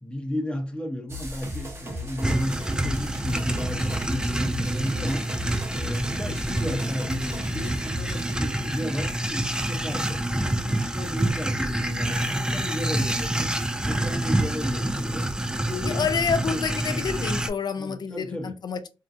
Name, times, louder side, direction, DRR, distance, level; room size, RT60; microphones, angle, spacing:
voice 1, 0.0-5.3 5.7-10.2 10.6-13.5 13.9-15.3 15.6-17.0 17.8-18.5, left 1 dB, 10° left, 0.8 m, -34 dB
sound 1, 1.1-8.4, left 1 dB, 30° right, 0.9 m, -36 dB
sound 2, 2.2-17.5, right 1 dB, 10° right, 0.3 m, -27 dB
voice 2, 15.8-18.9, left 6 dB, 55° left, 0.4 m, -28 dB
2.6 x 2.2 x 2.5 m
cardioid pair, 70°, 9 cm